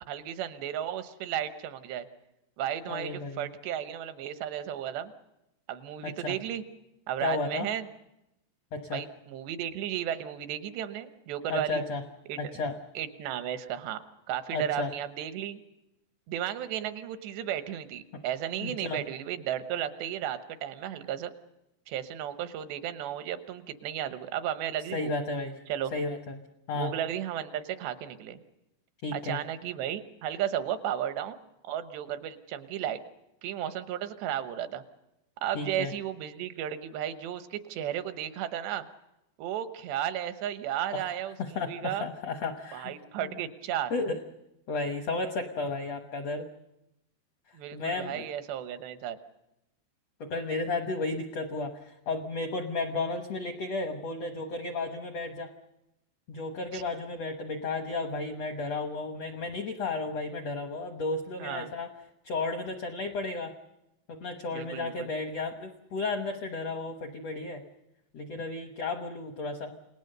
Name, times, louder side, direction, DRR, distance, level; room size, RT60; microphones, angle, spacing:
voice 1, 0.1-2.1 2.6-5.1 5.7-6.6 7.1-7.9 8.9-11.8 12.3-12.4 13.0-14.0 14.3-15.6 16.3-21.3 21.9-25.1 25.7-25.9 26.7-28.4 29.1-31.4 31.6-33.0 33.4-34.8 35.4-38.9 39.4-42.1 42.7-43.9 47.5-49.2 56.7-56.8 61.4-61.7 64.5-65.1, right 10 dB, 85° right, 10 dB, 3.3 m, -34 dB
voice 2, 2.8-3.5 6.0-6.4 7.2-7.7 8.7-9.0 11.5-12.0 12.4-12.7 14.5-14.9 18.6-19.0 24.9-25.6 25.9-26.4 26.7-26.9 29.0-29.4 35.5-35.9 40.9-41.1 41.4-42.9 43.2-43.3 43.9-44.2 44.7-46.5 47.7-48.2 50.2-55.5 56.3-61.9 62.2-63.5 64.1-67.6 68.1-69.8, left 3 dB, 75° left, 6 dB, 1.4 m, -33 dB
29.0 x 18.5 x 6.7 m, 0.90 s
omnidirectional pair, 4.8 m